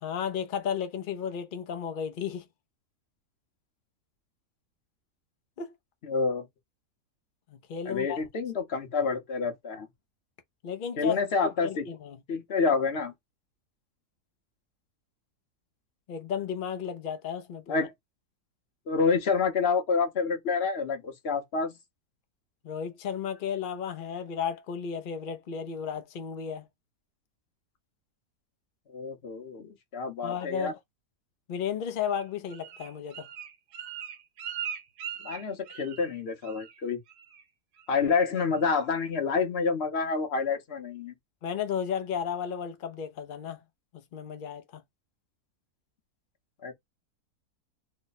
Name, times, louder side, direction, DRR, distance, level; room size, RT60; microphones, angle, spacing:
voice 1, 0.0-2.4 5.6-5.7 7.5-8.2 10.6-11.2 11.6-12.2 16.1-17.9 22.6-26.7 30.2-30.8 31.5-33.3 41.4-43.6 44.1-44.8, left 8 dB, 70° left, 0.4 m, -33 dB
voice 2, 6.0-6.5 7.9-9.9 11.0-11.9 12.3-13.1 17.7-17.9 18.9-21.7 28.9-30.7 35.2-37.0 37.9-41.1 46.6-46.7, left 5 dB, 50° left, 0.9 m, -28 dB
Bird, 32.1-36.2 36.4-36.8 37.1-37.4 37.8-38.2 38.6-38.7, right 9 dB, 80° right, 1.2 m, -40 dB
3.2 x 2.1 x 3.9 m
omnidirectional pair, 1.7 m